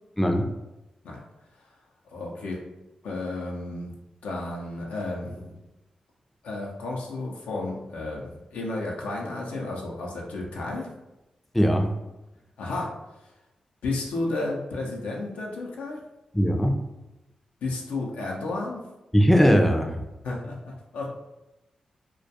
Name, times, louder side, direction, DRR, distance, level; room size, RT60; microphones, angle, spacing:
voice 1, 0.2-0.5 11.5-11.9 16.3-16.8 19.1-19.9, equal, 5° left, 3 dB, 0.4 m, -20 dB
voice 2, 2.1-2.6 3.0-3.9 4.2-5.5 6.4-10.9 12.6-12.9 13.8-16.0 17.6-18.8 20.2-21.1, left 2 dB, 85° left, -1 dB, 0.5 m, -32 dB
2.2 x 2.2 x 2.7 m, 0.98 s
supercardioid pair, 45°, 2 cm